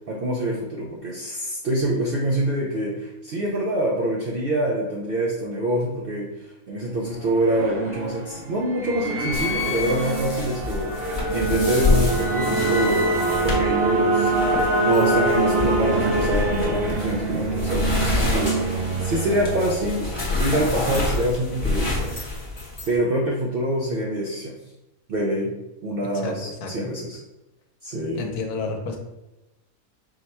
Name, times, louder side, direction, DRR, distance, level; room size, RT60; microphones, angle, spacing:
voice 1, 0.1-13.1 13.4-14.5 14.8-20.1 20.4-22.1 22.9-24.6 25.1-25.5 25.8-27.2 27.8-28.3, right 1 dB, 65° right, -2 dB, 0.5 m, -26 dB
sound 1, 6.9-20.7, right 2 dB, 85° right, 1.3 m, -24 dB
sound 2, 9.3-23.0, left 3 dB, 20° left, 0.9 m, -28 dB
voice 2, 26.6-26.9 28.1-29.0, left 3 dB, 80° left, 3 dB, 1.2 m, -30 dB
4.7 x 2.1 x 4.1 m, 1.0 s
omnidirectional pair, 1.6 m